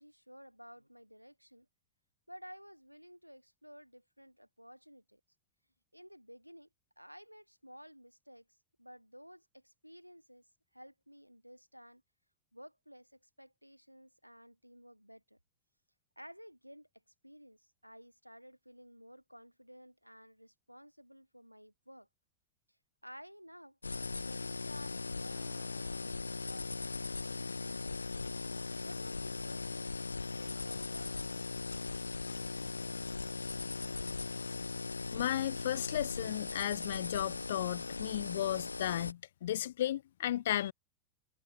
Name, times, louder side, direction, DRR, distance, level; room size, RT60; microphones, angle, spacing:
voice 1, 0.0-1.7 2.3-5.2 5.9-6.7 7.0-8.4 8.8-10.4 10.7-12.0 12.5-15.4 16.2-16.9 17.2-22.1 23.0-23.8 24.2-26.7 26.9-28.1 28.8-31.3, equal, 90° right, 2.1 m, -54 dB
sound 1, 23.8-39.1, left 3 dB, 80° left, 2.1 m, -39 dB
sound 2, 25.3-26.3, right 7 dB, 20° right, 7.4 m, -65 dB
voice 2, 35.1-40.7, left 12 dB, 60° left, 0.4 m, -34 dB
figure-of-eight pair, 90°, 0 cm